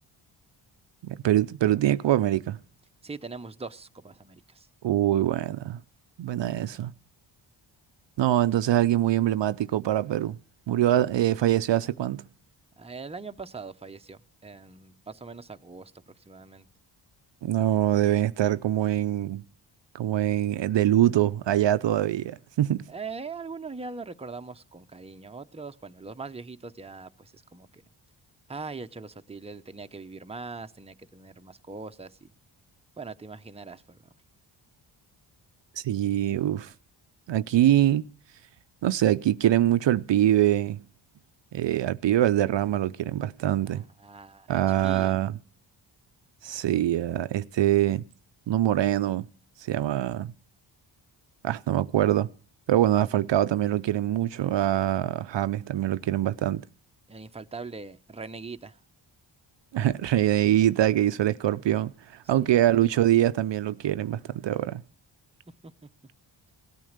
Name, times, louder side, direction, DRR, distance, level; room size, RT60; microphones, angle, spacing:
voice 1, 1.0-2.6 4.8-5.8 6.2-6.9 8.2-10.4 10.7-12.2 17.4-19.4 19.9-22.8 35.8-36.7 37.3-38.0 38.8-40.8 41.5-43.8 44.5-45.3 46.4-48.0 48.5-49.3 49.6-50.3 51.4-52.3 52.7-56.6 59.7-64.8, right 12 dB, 65° right, 0.6 m, -24 dB
voice 2, 3.0-4.7 12.8-15.9 16.3-16.7 22.9-27.8 28.5-32.3 33.0-34.0 43.7-45.2 57.1-58.8 62.4-62.5 65.6-65.9, right 4 dB, 10° right, 0.7 m, -41 dB
17.5 x 9.2 x 6.6 m
cardioid pair, 70°, 49 cm